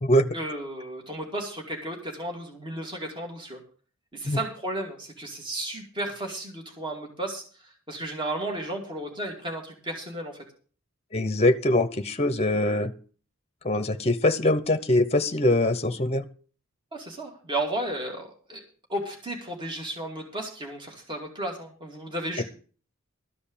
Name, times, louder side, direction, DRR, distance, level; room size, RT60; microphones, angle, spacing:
voice 1, 0.3-3.6 4.1-10.4 16.9-18.6 18.9-22.4, right 1 dB, 25° right, 1 dB, 2.6 m, -34 dB
voice 2, 11.1-12.9 13.6-16.3 22.4-22.5, left 1 dB, 30° left, 10 dB, 0.9 m, -23 dB
13.5 x 5.2 x 8.7 m, 0.42 s
head